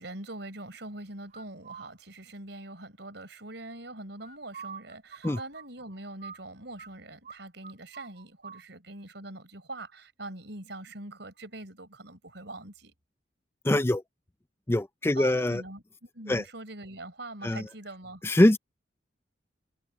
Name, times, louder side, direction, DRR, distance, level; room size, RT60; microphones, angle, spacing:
voice 1, 0.0-12.9 15.1-18.2, right 2 dB, 70° right, 4.4 m, -43 dB
sound 1, 1.3-1.9 4.2-6.9 7.2-7.4 7.6-8.6, right 6 dB, 45° right, 2.7 m, -45 dB
voice 2, 13.6-14.0 14.7-15.6 16.3-16.4 17.4-17.7 18.2-18.6, left 1 dB, 15° left, 0.4 m, -23 dB
head